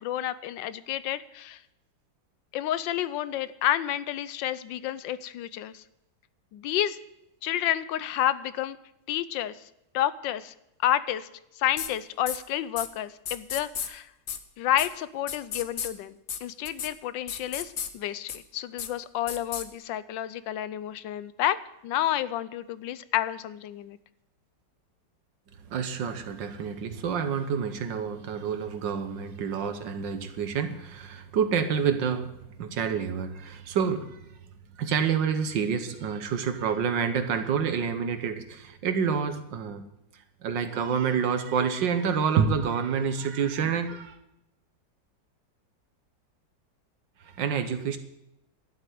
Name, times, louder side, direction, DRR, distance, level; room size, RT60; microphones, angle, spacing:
voice 1, 0.0-1.6 2.5-5.7 6.5-7.0 7.4-8.8 9.1-9.5 9.9-10.5 10.8-11.3 11.6-14.0 14.6-16.1 16.4-17.7 17.9-21.6 21.8-24.0, left 12 dB, 80° left, 15 dB, 1.3 m, -29 dB
sound 1, 11.8-11.9 12.3-12.4 12.8-12.9 13.3-13.9 14.3-14.4 14.8-14.9 15.3-15.9 16.3-16.4 16.6-16.9 17.3-17.9 18.3-18.4 18.8-18.9 19.3-19.6, left 7 dB, 50° left, 0.9 m, -33 dB
voice 2, 25.7-32.3 32.6-34.3 34.8-39.8 40.4-44.2 47.2-48.0, right 6 dB, 75° right, 9 dB, 1.8 m, -28 dB
11.5 x 8.0 x 9.3 m, 0.86 s
omnidirectional pair, 2.0 m